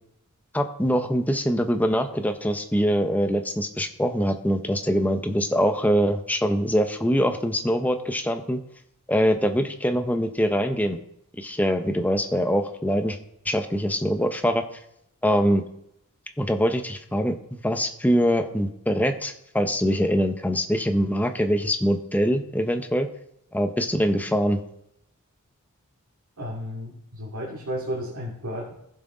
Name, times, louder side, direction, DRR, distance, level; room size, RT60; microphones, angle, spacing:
voice 1, 0.5-8.6 9.1-11.0 11.4-13.2 13.4-14.6 15.2-15.6 16.4-23.1 23.5-24.6, equal, 5° left, 6 dB, 0.7 m, -23 dB
voice 2, 26.4-28.7, equal, 85° right, -5 dB, 2.5 m, -33 dB
16.0 x 6.2 x 3.8 m, 0.77 s
head